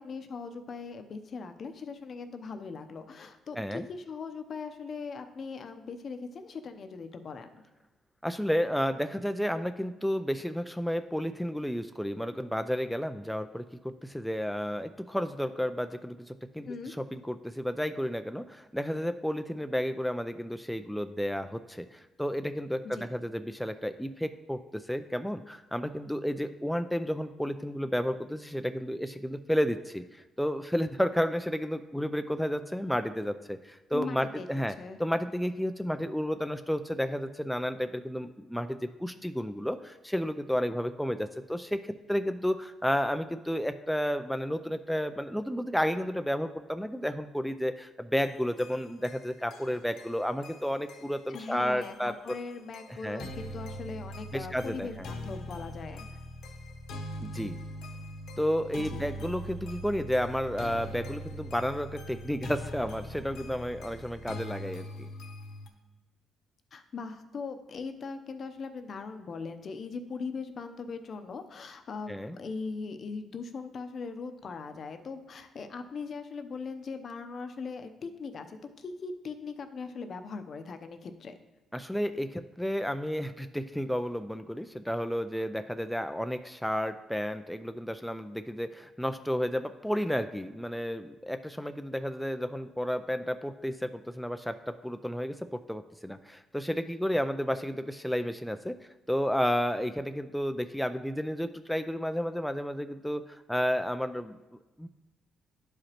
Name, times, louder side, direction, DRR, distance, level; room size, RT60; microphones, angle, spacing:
voice 1, 0.0-7.6 16.7-16.9 22.8-23.1 33.9-34.5 34.8-35.0 51.3-56.0 58.8-59.1 66.7-81.3, left 4 dB, 50° left, 8 dB, 0.7 m, -40 dB
voice 2, 3.5-3.9 8.2-34.7 35.0-52.4 52.9-53.3 54.3-55.1 57.2-57.6 58.4-65.1 72.1-72.4 81.7-98.8 99.1-104.9, equal, ahead, 8 dB, 0.3 m, -32 dB
sound 1, 48.2-65.7, equal, 75° left, 1.0 m, -42 dB
11.5 x 4.9 x 2.9 m, 1.1 s
cardioid pair, 90°, 0 cm